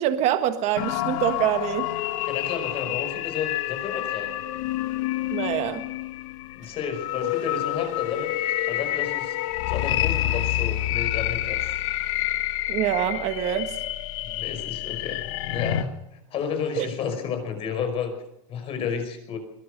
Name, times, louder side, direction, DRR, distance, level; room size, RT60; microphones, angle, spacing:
voice 1, 0.0-1.9 5.3-5.8 12.7-13.7 16.8-16.9, right 11 dB, 40° right, 8 dB, 1.6 m, -25 dB
sound 1, 0.8-15.8, left 14 dB, 65° left, 1.4 m, -28 dB
voice 2, 2.3-4.4 6.6-8.3 8.7-9.4 9.7-11.7 14.2-15.9 16.3-18.1 18.5-19.4, left 6 dB, 35° left, 7 dB, 5.3 m, -31 dB
22.0 x 18.0 x 6.5 m, 0.82 s
supercardioid pair, 155°, 18 cm